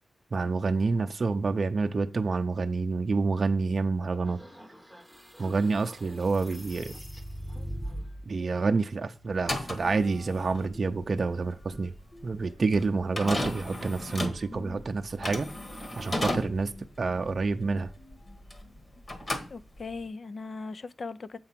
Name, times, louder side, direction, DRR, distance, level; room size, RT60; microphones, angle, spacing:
voice 1, 0.3-4.4 5.4-7.0 8.3-11.9 12.2-15.5 16.0-16.7 17.0-17.9, right 4 dB, 45° right, 0.6 m, -28 dB
sound 1, 4.2-8.3, equal, 5° left, 0.9 m, -41 dB
sound 2, 7.4-7.5 7.8-19.0, left 2 dB, 85° left, 1.8 m, -53 dB
sound 3, 9.3-18.8 19.0-20.1, left 1 dB, 30° left, 1.4 m, -35 dB
voice 2, 19.5-21.4, left 4 dB, 50° left, 0.5 m, -38 dB
7.8 x 4.7 x 5.8 m
wide cardioid pair, 150°, 0 cm